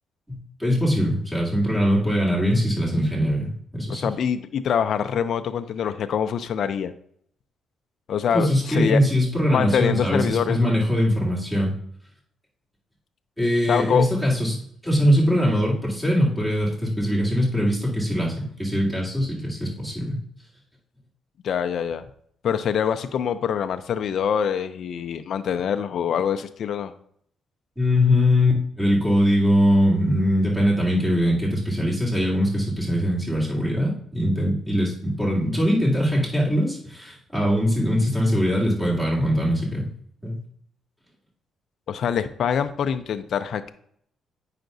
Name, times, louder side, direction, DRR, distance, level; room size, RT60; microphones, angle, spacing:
voice 1, 0.3-4.1 8.3-11.7 13.4-20.2 27.8-39.9 40.2-40.4, equal, 5° right, -5 dB, 2.6 m, -22 dB
voice 2, 3.9-6.9 8.1-9.0 9.5-10.7 13.7-14.1 21.4-22.0 22.4-26.9 41.9-43.7, left 8 dB, 65° left, 9 dB, 0.4 m, -25 dB
9.0 x 5.7 x 2.6 m, 0.67 s
cardioid pair, 90°, 0 cm